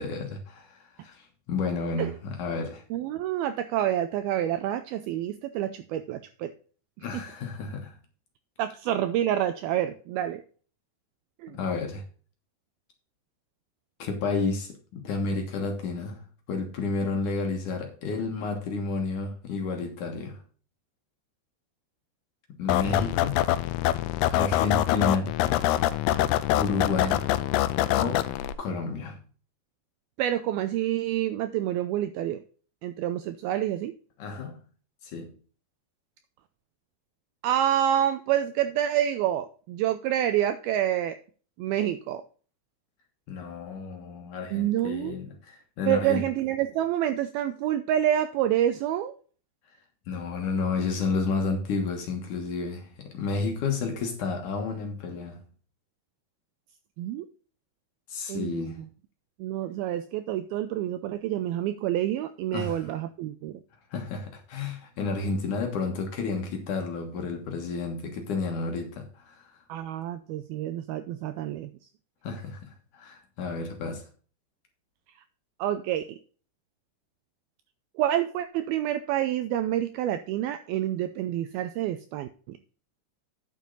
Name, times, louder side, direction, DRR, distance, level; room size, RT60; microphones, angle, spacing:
voice 1, 0.0-2.8 7.0-8.0 11.6-12.0 14.0-16.2 16.5-20.4 22.5-23.4 24.2-25.3 26.5-27.3 28.0-28.3 28.6-29.2 34.2-34.6 35.0-35.3 43.3-46.3 50.1-55.4 58.1-58.8 62.5-62.9 63.9-69.6 72.2-74.0, left 4 dB, 60° left, 2.4 m, -31 dB
voice 2, 2.9-6.5 7.0-7.1 8.6-10.4 11.4-11.6 30.2-32.4 32.8-33.9 37.4-41.2 41.6-42.2 44.5-45.2 45.9-49.1 57.0-57.3 58.3-58.7 59.4-63.6 69.7-71.7 75.6-76.2 78.0-82.6, right 11 dB, 85° right, 2.2 m, -28 dB
sound 1, 22.7-28.5, left 14 dB, 80° left, 2.4 m, -25 dB
9.3 x 7.3 x 3.9 m
omnidirectional pair, 4.9 m